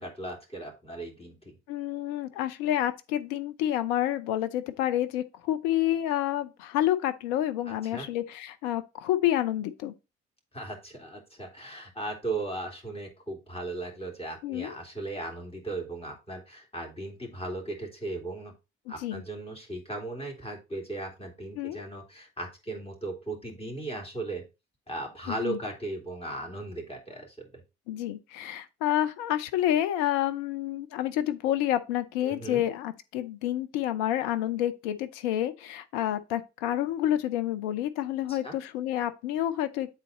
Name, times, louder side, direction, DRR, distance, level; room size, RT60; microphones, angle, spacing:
voice 1, 0.0-1.6 7.7-8.1 10.5-18.5 18.9-24.4 24.9-27.5 32.2-32.7 38.3-38.5, right 2 dB, 20° left, 3.0 m, -37 dB
voice 2, 1.7-9.9 14.4-14.7 19.0-19.2 21.6-21.8 25.3-25.6 27.9-39.9, left 12 dB, 70° left, 0.7 m, -29 dB
8.3 x 4.0 x 4.0 m
hypercardioid pair, 50°, 31 cm